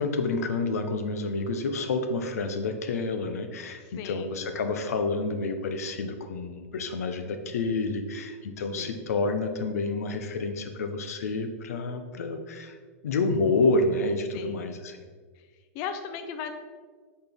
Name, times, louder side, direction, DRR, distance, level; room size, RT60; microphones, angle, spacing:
voice 1, 0.0-12.8 13.0-15.0, left 3 dB, 90° left, 7 dB, 0.7 m, -29 dB
voice 2, 4.0-4.4 8.8-9.1 14.3-14.7 15.7-16.5, left 7 dB, 40° left, 7 dB, 0.5 m, -37 dB
7.8 x 4.3 x 3.5 m, 1.6 s
supercardioid pair, 140°, 8 cm